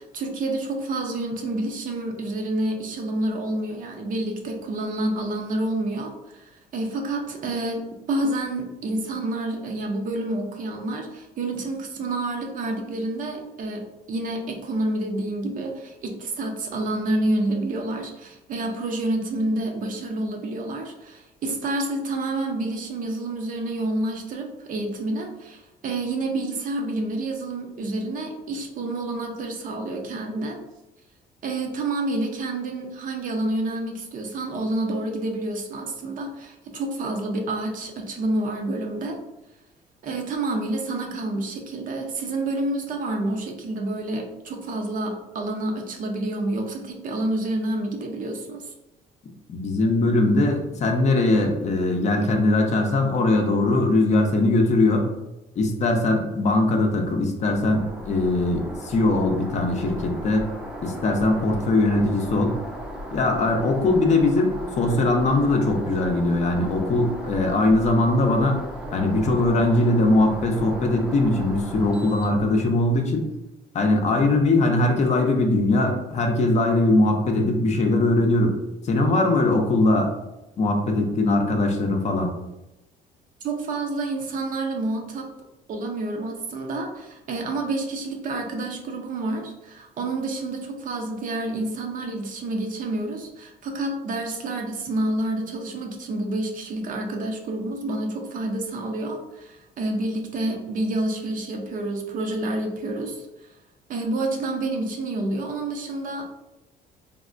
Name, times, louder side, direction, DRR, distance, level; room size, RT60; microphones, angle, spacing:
voice 1, 0.0-30.6 31.4-39.2 40.0-48.7 83.4-85.3 85.7-103.2 103.9-106.3, right 2 dB, 55° right, 2 dB, 0.6 m, -28 dB
voice 2, 49.5-55.1 55.6-60.5 60.8-62.6 63.1-68.6 68.9-73.2 73.7-78.5 78.8-80.1 80.6-82.3, left 2 dB, 45° left, 3 dB, 0.5 m, -21 dB
sound 1, 57.4-73.0, equal, 5° right, 0.5 m, -37 dB
3.5 x 2.1 x 2.5 m, 0.94 s
cardioid pair, 110°, 17 cm